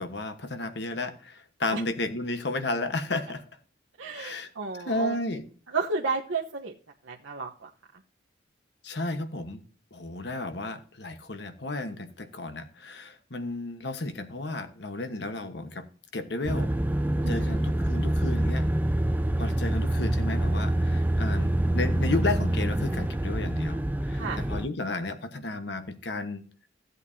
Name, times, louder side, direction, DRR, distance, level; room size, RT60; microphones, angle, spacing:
voice 1, 0.0-3.4 4.1-5.4 8.8-9.6 9.9-15.8 16.1-16.7 17.3-18.7 19.4-26.4, left 2 dB, 60° left, 9 dB, 1.3 m, -33 dB
voice 2, 4.0-5.2 5.7-6.7 7.1-7.7 17.2-17.6 24.1-24.4, right 4 dB, 85° right, -2 dB, 1.1 m, -32 dB
sound 1, 16.5-24.7, right 1 dB, 10° right, 0.4 m, -26 dB
15.5 x 8.2 x 2.8 m, 0.41 s
head